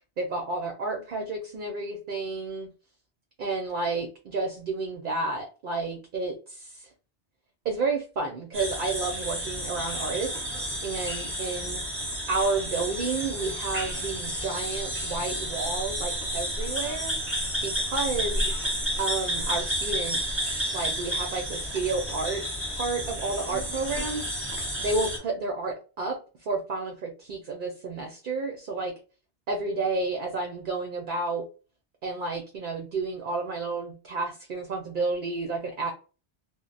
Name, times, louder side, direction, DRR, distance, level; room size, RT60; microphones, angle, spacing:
voice 1, 0.2-2.7 3.4-6.9 7.6-10.3 10.8-11.8 12.3-17.2 17.6-18.5 19.0-22.4 22.7-24.3 24.8-28.9 29.5-31.4 32.0-35.9, right 3 dB, 60° right, 2 dB, 0.6 m, -31 dB
sound 1, 8.5-25.2, equal, 15° right, 0.8 m, -31 dB
2.1 x 2.0 x 3.7 m, 0.34 s
omnidirectional pair, 1.2 m